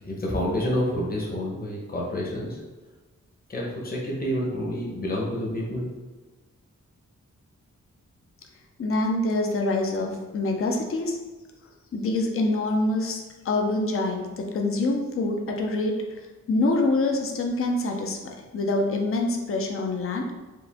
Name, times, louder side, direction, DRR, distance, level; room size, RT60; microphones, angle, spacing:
voice 1, 0.0-2.6 3.5-5.9, equal, 30° left, -3 dB, 0.9 m, -28 dB
voice 2, 8.8-11.2 11.9-16.2 16.5-18.2 18.5-20.3, left 2 dB, 45° left, 2 dB, 0.5 m, -25 dB
4.7 x 2.5 x 3.5 m, 1.3 s
wide cardioid pair, 170°, 30 cm